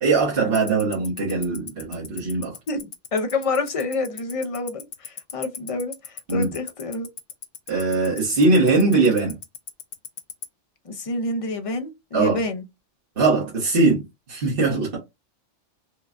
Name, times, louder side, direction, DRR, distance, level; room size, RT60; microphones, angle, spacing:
voice 1, 0.0-2.5 6.3-6.5 7.7-9.3 12.1-12.4 13.2-14.0 14.3-15.0, right 3 dB, 50° right, 1.3 m, -21 dB
Tick-tock, 0.5-10.4, left 9 dB, 80° left, 1.0 m, -34 dB
voice 2, 2.7-7.1 10.8-12.6, left 2 dB, 45° left, 0.5 m, -28 dB
4.5 x 2.3 x 2.5 m
omnidirectional pair, 1.2 m